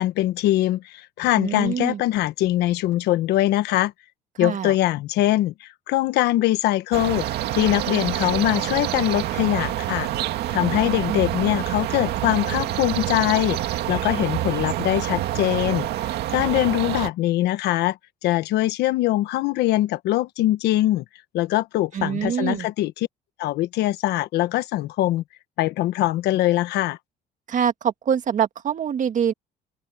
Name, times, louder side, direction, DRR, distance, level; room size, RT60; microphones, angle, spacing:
voice 1, 0.0-3.9 4.4-7.3 7.5-10.1 10.5-18.0 18.2-21.0 21.3-23.1 23.4-25.2 25.6-27.0, left 15 dB, 85° left, 1.2 m, -22 dB
voice 2, 1.4-2.0 4.4-4.7 10.6-10.8 11.1-11.2 21.9-22.7 27.5-29.3, right 8 dB, 50° right, 2.0 m, -25 dB
sound 1, 6.9-17.1, right 14 dB, 75° right, 2.2 m, -27 dB
open air
cardioid pair, 110°, 17 cm